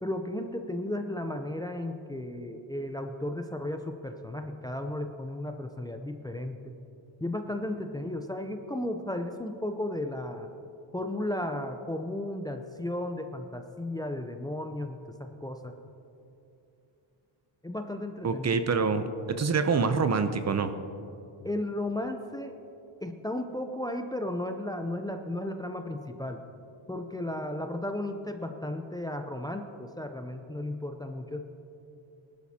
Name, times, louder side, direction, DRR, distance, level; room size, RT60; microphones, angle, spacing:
voice 1, 0.0-6.7 7.2-10.5 10.9-15.7 17.6-18.6 21.4-22.5 23.0-26.4 26.9-31.4, left 1 dB, 10° left, 5 dB, 0.6 m, -34 dB
voice 2, 18.2-19.0 19.4-20.7, right 5 dB, 35° right, 9 dB, 0.7 m, -25 dB
19.5 x 12.0 x 2.9 m, 2.7 s
cardioid pair, 110°, 47 cm